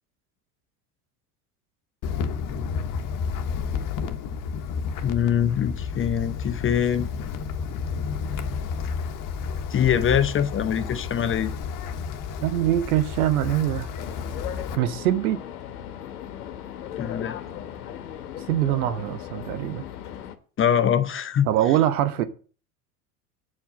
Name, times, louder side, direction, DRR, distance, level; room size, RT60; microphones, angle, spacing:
Wind, 2.0-14.8, left 6 dB, 45° left, 1.1 m, -31 dB
voice 1, 5.0-7.1 9.7-11.5 17.0-17.4 20.6-21.5, left 9 dB, 30° left, 0.8 m, -23 dB
voice 2, 12.4-13.9 14.8-15.4 18.5-19.9 21.5-22.2, right 12 dB, 75° right, 1.1 m, -23 dB
sound 1, 14.0-20.4, left 10 dB, 80° left, 1.1 m, -37 dB
8.5 x 4.6 x 7.2 m
hypercardioid pair, 80°, 45 cm